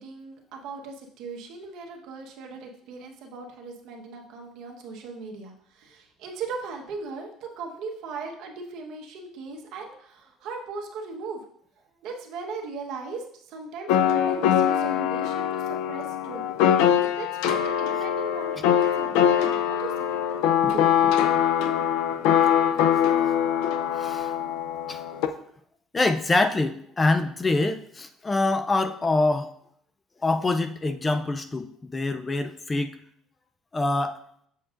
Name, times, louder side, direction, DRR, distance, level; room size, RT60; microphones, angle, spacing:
voice 1, 0.0-11.4 12.0-16.4 16.7-20.1 20.6-21.5, right 4 dB, 65° right, 1 dB, 1.1 m, -38 dB
sound 1, 13.9-25.3, left 9 dB, 90° left, 0.4 m, -23 dB
voice 2, 23.9-24.3 24.9-25.0 25.9-29.5 30.2-33.0 33.7-34.2, left 2 dB, 20° left, 9 dB, 0.4 m, -25 dB
7.3 x 6.8 x 2.5 m, 0.68 s
cardioid pair, 140°, 0 cm